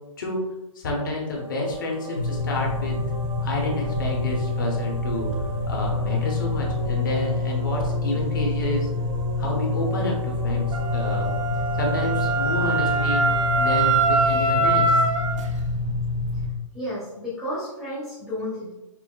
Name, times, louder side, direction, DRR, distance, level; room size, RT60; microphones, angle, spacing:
voice 1, 0.7-3.0 3.4-5.3 5.7-8.9 9.4-11.3 11.8-13.2 13.6-15.0, left 2 dB, 35° left, -1 dB, 0.8 m, -29 dB
sound 1, 1.1-15.8, right 1 dB, 85° right, 0.9 m, -39 dB
sound 2, 2.2-16.5, left 3 dB, 65° left, 1.1 m, -27 dB
Wind instrument woodwind instrument, 10.7-15.4, right 3 dB, 65° right, 0.6 m, -23 dB
voice 2, 16.7-18.7, left 1 dB, ahead, -10 dB, 0.6 m, -32 dB
5.6 x 2.6 x 2.3 m, 1.0 s
hypercardioid pair, 170°, 17 cm